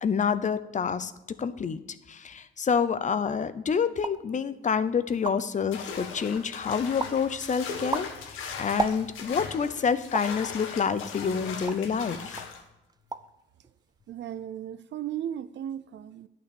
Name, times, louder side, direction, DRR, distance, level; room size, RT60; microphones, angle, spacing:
voice 1, 0.0-1.1 1.4-1.8 2.1-12.4, left 6 dB, 40° left, 0.7 m, -28 dB
sound 1, 4.0-4.3 4.8-4.9 5.1-5.6 6.1-6.6 7.0-7.3 7.7-9.4 10.1-10.4 11.0-12.0 12.4-12.6 12.9-13.4 13.6-14.1, right 4 dB, 20° right, 0.5 m, -35 dB
sound 2, 5.7-12.6, left 6 dB, 85° left, 1.5 m, -39 dB
voice 2, 14.1-16.3, right 10 dB, 65° right, 0.6 m, -36 dB
10.5 x 6.3 x 7.0 m
cardioid pair, 90°, 20 cm